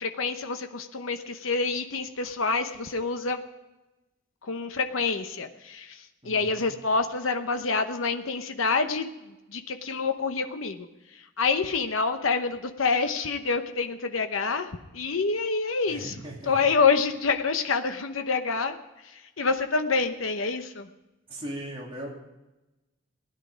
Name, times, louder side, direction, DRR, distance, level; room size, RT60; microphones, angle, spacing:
voice 1, 0.0-3.4 4.5-9.1 9.5-10.9 11.4-16.1 16.5-18.7 19.0-20.9, left 4 dB, 80° left, 7 dB, 0.9 m, -27 dB
voice 2, 6.2-6.8 15.9-16.7 21.3-22.1, right 1 dB, 25° right, -2 dB, 2.9 m, -39 dB
16.5 x 11.0 x 5.0 m, 1.0 s
head